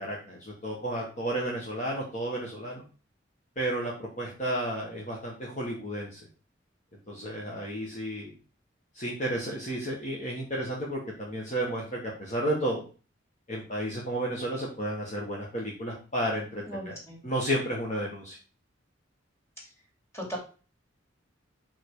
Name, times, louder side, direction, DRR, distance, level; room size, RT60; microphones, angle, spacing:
voice 1, 0.0-2.8 3.6-3.9 4.2-6.2 7.1-8.3 8.9-12.8 13.5-17.0 17.2-18.4, right 1 dB, 40° left, -2 dB, 1.6 m, -32 dB
voice 2, 16.6-17.2 20.1-20.4, equal, 15° left, -2 dB, 3.1 m, -37 dB
5.6 x 5.4 x 4.7 m, 0.36 s
head